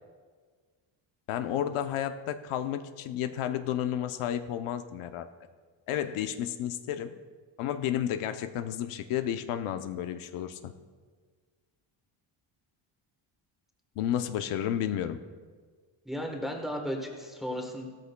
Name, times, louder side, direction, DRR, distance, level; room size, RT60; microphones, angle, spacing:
voice 1, 1.3-5.3 5.9-7.1 7.6-10.7 14.0-15.2, left 10 dB, 80° left, 8 dB, 0.8 m, -32 dB
voice 2, 16.0-17.9, equal, ahead, 1 dB, 1.1 m, -34 dB
17.0 x 13.5 x 2.2 m, 1.5 s
cardioid pair, 175°, 49 cm